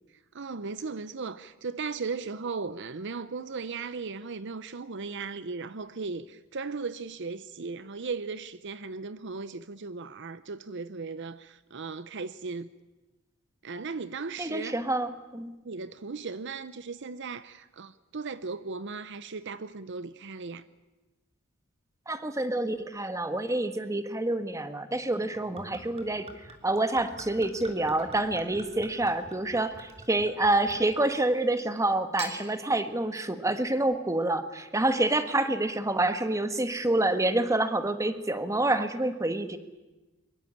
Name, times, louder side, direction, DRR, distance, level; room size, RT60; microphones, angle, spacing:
voice 1, 0.3-12.7 13.6-14.8 15.6-20.6, right 4 dB, 55° right, 0.7 m, -37 dB
voice 2, 14.4-15.5 22.1-26.3 26.6-39.6, right 2 dB, 15° right, 1.5 m, -27 dB
Gurgling / Chink clink / Liquid, 25.2-31.3 32.0-32.4, right 3 dB, 30° right, 3.4 m, -46 dB
23.5 x 22.0 x 8.7 m
head